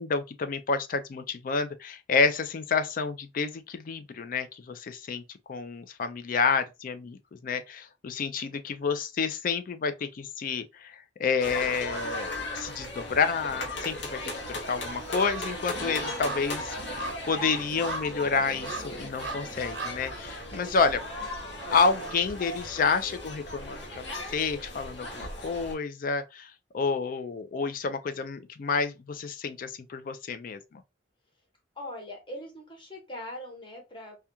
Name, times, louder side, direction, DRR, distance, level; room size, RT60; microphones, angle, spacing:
voice 1, 0.0-5.2 5.5-14.2 14.5-21.0 21.7-24.0 24.3-30.8, left 5 dB, 50° left, 0.4 m, -29 dB
sound 1, 11.4-25.7, left 1 dB, 70° left, 0.7 m, -37 dB
sound 2, 12.3-13.0 13.2-23.2 23.6-23.7, right 4 dB, 75° right, 0.5 m, -43 dB
voice 2, 16.0-16.5 20.7-21.1 21.4-21.6 31.7-34.2, left 1 dB, 25° left, 0.9 m, -42 dB
2.3 x 2.2 x 2.8 m
head